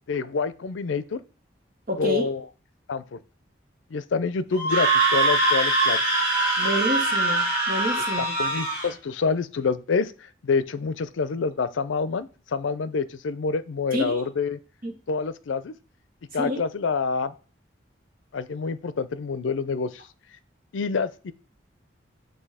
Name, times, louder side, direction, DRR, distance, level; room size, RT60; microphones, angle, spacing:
voice 1, 0.1-1.2 2.0-2.4 2.9-3.2 3.9-6.1 8.2-14.6 15.1-15.7 16.3-17.3 18.3-20.0 20.7-21.3, left 5 dB, 90° left, 15 dB, 0.5 m, -27 dB
voice 2, 1.9-2.2 6.6-8.4 13.9-14.2 14.8-15.0 16.4-16.6, equal, 50° right, 4 dB, 1.2 m, -28 dB
Screaming, 4.5-8.9, right 2 dB, 10° right, 2.3 m, -23 dB
7.7 x 2.7 x 4.8 m, 0.35 s
head